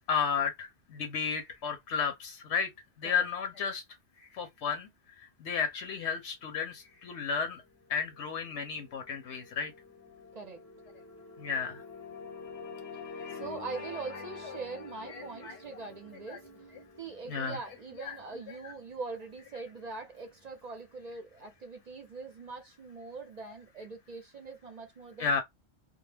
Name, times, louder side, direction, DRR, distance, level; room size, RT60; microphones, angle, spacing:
voice 1, 0.1-2.7 3.0-3.8 4.2-4.9 5.2-7.6 7.9-9.7 11.4-11.8 13.2-13.4 14.4-14.6 15.1-15.8 16.3-16.4 17.3-17.6 18.0-18.2 18.5-18.6 25.2-25.4, left 6 dB, 80° left, 0.9 m, -33 dB
sound 1, 7.6-20.2, left 4 dB, 25° left, 0.4 m, -48 dB
voice 2, 13.3-16.4 17.0-25.4, right 4 dB, 50° right, 0.5 m, -42 dB
2.2 x 2.0 x 3.1 m
omnidirectional pair, 1.2 m